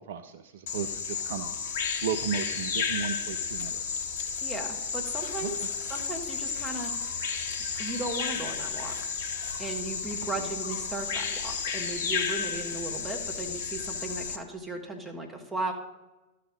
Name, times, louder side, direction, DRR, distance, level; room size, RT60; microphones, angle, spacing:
voice 1, 0.1-1.5 2.0-3.8 5.4-5.7 10.4-10.5, right 7 dB, 60° right, 9 dB, 0.4 m, -34 dB
Bird vocalization bird call bird song, 0.7-14.4, left 6 dB, 55° left, 0.7 m, -32 dB
voice 2, 4.4-5.6 5.9-7.1 7.8-8.9 9.6-15.7, right 2 dB, 10° right, 1 dB, 1.4 m, -36 dB
12.0 x 4.1 x 5.2 m, 1.1 s
figure-of-eight pair, 90°, 0 cm